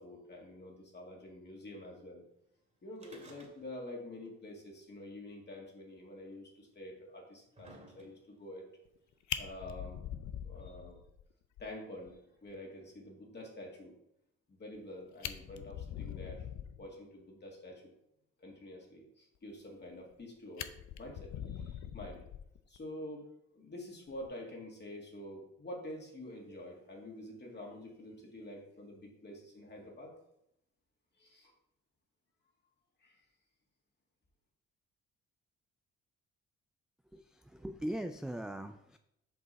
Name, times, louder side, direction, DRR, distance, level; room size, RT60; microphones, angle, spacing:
voice 1, 0.0-2.2 2.8-8.7 9.4-10.0 10.4-11.0 11.6-13.9 14.5-16.5 16.8-17.9 18.4-20.7 21.0-22.3 22.7-23.3 23.5-30.1 31.1-31.5 33.0-33.2, left 1 dB, 35° left, -1 dB, 2.3 m, -47 dB
sound 1, 2.9-4.0 4.3-4.4 5.3-5.4 6.3-6.4 7.1-8.4 9.3-9.4, right 1 dB, 25° right, 2.1 m, -56 dB
Fire, 8.8-9.0 9.3-11.2 11.6-11.7 12.0-12.1 12.5-12.6 14.7-14.8 15.1-16.9 19.7-20.2 20.6-22.8 24.1-24.3, left 10 dB, 70° left, 0.6 m, -42 dB
voice 2, 37.1-39.0, right 1 dB, ahead, 7 dB, 0.3 m, -40 dB
6.9 x 5.3 x 4.1 m, 0.79 s
cardioid pair, 90°, 30 cm